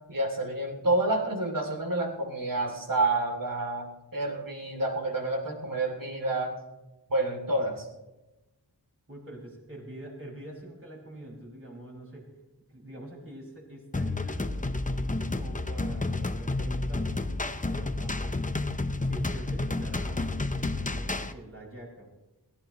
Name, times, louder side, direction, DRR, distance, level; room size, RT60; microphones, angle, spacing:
voice 1, 0.1-6.6 7.1-7.9, right 2 dB, 55° right, 2 dB, 3.0 m, -29 dB
voice 2, 9.1-12.2 12.7-18.6 19.1-22.1, right 1 dB, 30° right, -3 dB, 5.8 m, -45 dB
sound 1, 13.9-21.3, left 2 dB, 20° left, 0.8 m, -30 dB
21.0 x 15.5 x 3.1 m, 1.0 s
wide cardioid pair, 75°, 40 cm